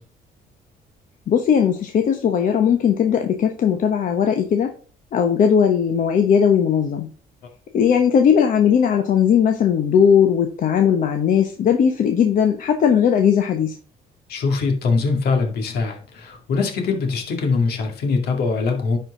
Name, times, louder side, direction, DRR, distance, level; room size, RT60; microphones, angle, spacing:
voice 1, 1.3-4.7 5.1-7.1 7.7-13.7, left 7 dB, 50° left, 1.0 m, -18 dB
voice 2, 14.3-19.0, left 4 dB, 70° left, 2.3 m, -22 dB
10.5 x 4.6 x 3.8 m
cardioid pair, 110°, 17 cm